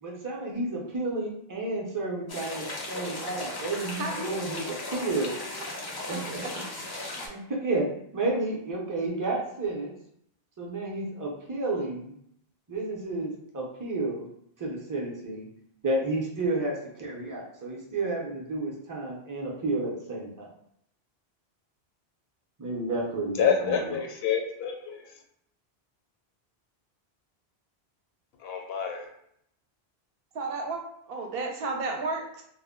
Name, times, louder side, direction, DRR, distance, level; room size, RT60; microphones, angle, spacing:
voice 1, 0.0-5.4 6.1-6.4 7.1-7.8 8.1-9.9 10.6-12.1 12.7-14.3 14.6-15.5 15.8-20.5 22.6-23.8, right 2 dB, 25° right, -3 dB, 0.4 m, -31 dB
sound 1, 2.3-7.3, left 2 dB, 35° left, 0.4 m, -36 dB
voice 2, 6.1-6.5 30.3-30.8 31.1-32.4, right 3 dB, 70° right, 1 dB, 0.8 m, -32 dB
voice 3, 23.4-25.0 28.4-29.1, left 7 dB, 75° left, 3 dB, 0.8 m, -27 dB
2.1 x 2.0 x 3.6 m, 0.71 s
omnidirectional pair, 1.1 m